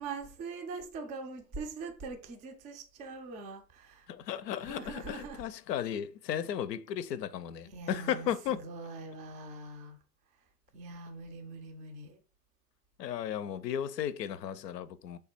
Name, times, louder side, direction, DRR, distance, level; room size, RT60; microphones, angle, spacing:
voice 1, 0.0-4.1 4.6-5.5 7.6-10.0 10.7-12.2, right 4 dB, 15° right, 0.4 m, -43 dB
voice 2, 4.1-8.6 13.0-15.2, left 10 dB, 85° left, 0.6 m, -35 dB
3.3 x 2.2 x 4.4 m
hypercardioid pair, 100°, 48 cm